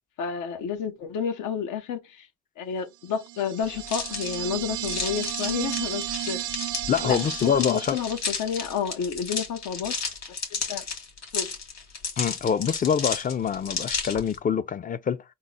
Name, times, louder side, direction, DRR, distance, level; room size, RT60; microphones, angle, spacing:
voice 1, 0.2-2.3 2.6-6.5 7.0-10.0 10.5-10.8 11.3-11.5, left 7 dB, 80° left, 0.8 m, -30 dB
sound 1, 3.2-8.6, right 14 dB, 75° right, 0.6 m, -34 dB
sound 2, 3.8-14.4, left 5 dB, 60° left, 2.1 m, -33 dB
voice 2, 6.9-8.0 12.2-15.2, left 7 dB, 30° left, 0.4 m, -25 dB
3.7 x 2.0 x 3.8 m
cardioid pair, 90°, 30 cm